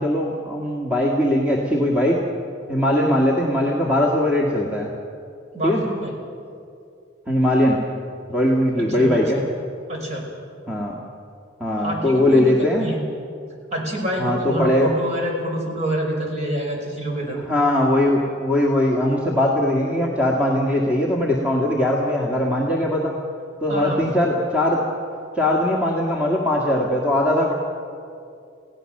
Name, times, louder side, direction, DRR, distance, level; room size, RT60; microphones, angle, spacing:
voice 1, 0.0-2.2 2.7-4.9 5.6-5.8 7.3-7.8 8.3-9.4 10.7-11.0 11.6-12.9 14.2-14.9 17.5-23.2 23.6-24.8 25.4-27.5, left 1 dB, 5° right, -3 dB, 2.0 m, -20 dB
voice 2, 5.5-6.1 8.8-9.4 9.9-10.3 11.8-13.0 13.7-17.4 23.7-24.1, right 1 dB, 35° right, 0 dB, 5.7 m, -27 dB
29.0 x 17.0 x 6.7 m, 2.5 s
head